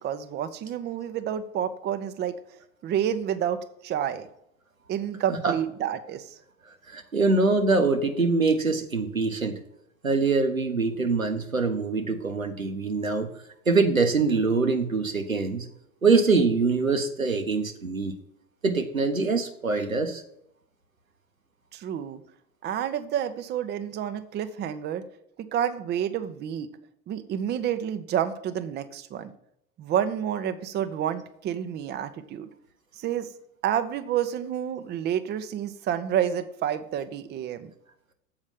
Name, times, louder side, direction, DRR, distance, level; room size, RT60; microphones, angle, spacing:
voice 1, 0.0-2.4 2.8-4.3 4.9-6.4 21.7-22.2 22.6-25.0 25.4-26.7 27.1-29.3 29.8-32.5 33.0-33.3 33.6-37.7, right 9 dB, 25° right, 9 dB, 0.7 m, -29 dB
voice 2, 6.9-9.5 10.0-13.3 13.7-15.7 16.0-18.1 18.6-20.2, right 4 dB, 90° right, 6 dB, 0.9 m, -24 dB
7.3 x 4.9 x 7.2 m, 0.75 s
figure-of-eight pair, 75°, 40 cm